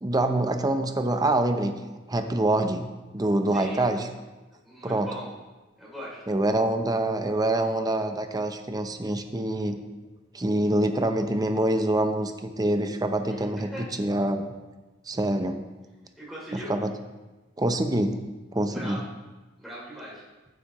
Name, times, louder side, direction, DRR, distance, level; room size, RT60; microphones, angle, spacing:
voice 1, 0.0-1.7 2.1-4.1 4.8-5.1 6.3-9.8 10.3-14.4 15.1-15.6 16.5-16.9 17.6-18.2 18.5-19.0, right 1 dB, 20° right, 7 dB, 0.7 m, -25 dB
voice 2, 3.5-4.0 4.6-5.3 5.8-6.2 13.3-13.9 16.2-16.7 18.7-19.0 19.6-20.2, equal, ahead, -7 dB, 3.0 m, -40 dB
14.5 x 8.0 x 3.1 m, 1.2 s
head